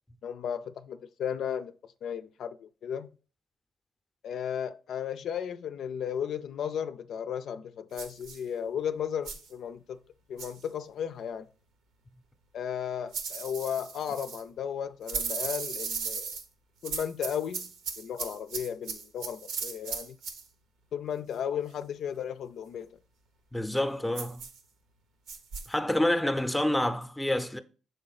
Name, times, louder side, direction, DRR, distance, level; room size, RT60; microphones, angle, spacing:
voice 1, 0.2-1.7 2.0-3.2 4.2-10.0 10.3-11.5 12.5-16.3 16.8-17.7 18.0-20.2 20.9-22.9, left 8 dB, 70° left, 0.4 m, -35 dB
sound 1, 8.0-8.4 9.3-9.5 10.4-10.6 13.1-14.4 15.1-16.4 16.8-20.4 24.1-24.6 25.3-25.7, right 5 dB, 85° right, 1.1 m, -36 dB
voice 2, 23.5-24.4 25.7-27.6, left 1 dB, 5° left, 0.6 m, -28 dB
6.5 x 3.8 x 4.0 m
cardioid pair, 90°, 0 cm